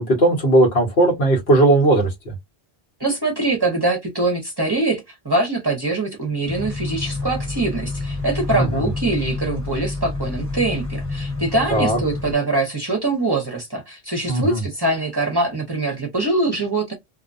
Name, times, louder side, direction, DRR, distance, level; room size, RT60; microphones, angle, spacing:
voice 1, 0.0-2.3 8.5-8.9 11.7-12.0 14.3-14.6, right 2 dB, 75° left, 1.3 m, -17 dB
voice 2, 3.0-16.9, right 2 dB, 25° right, 0.7 m, -23 dB
sound 1, 6.5-12.3, left 2 dB, 15° left, 1.0 m, -28 dB
2.6 x 2.2 x 2.5 m
omnidirectional pair, 1.1 m